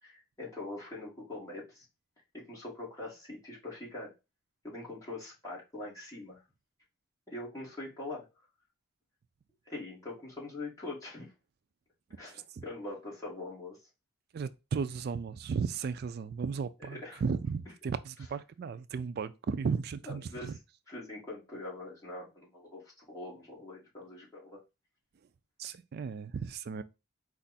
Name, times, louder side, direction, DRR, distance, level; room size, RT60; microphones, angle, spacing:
voice 1, 0.0-1.9 2.3-4.1 4.6-6.4 7.3-8.3 9.7-11.3 12.2-13.8 16.9-17.2 20.1-20.6 20.9-24.6, left 2 dB, 15° left, 2.0 m, -43 dB
voice 2, 14.3-20.6 25.6-26.8, right 5 dB, 50° right, 0.3 m, -35 dB
4.4 x 2.5 x 4.0 m
head